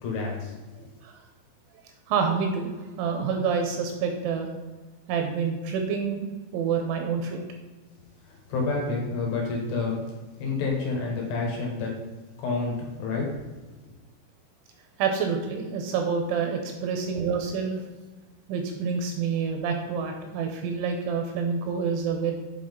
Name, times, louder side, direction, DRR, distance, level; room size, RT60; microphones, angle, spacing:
voice 1, 0.0-0.6 8.3-10.1 10.4-11.9 12.4-13.4, left 3 dB, 75° left, -1 dB, 3.7 m, -29 dB
voice 2, 2.1-2.7 3.0-4.5 5.1-6.3 6.5-7.4 15.0-17.8 18.5-22.3, right 6 dB, 80° right, 4 dB, 2.9 m, -27 dB
8.5 x 3.9 x 3.7 m, 1.2 s
omnidirectional pair, 5.7 m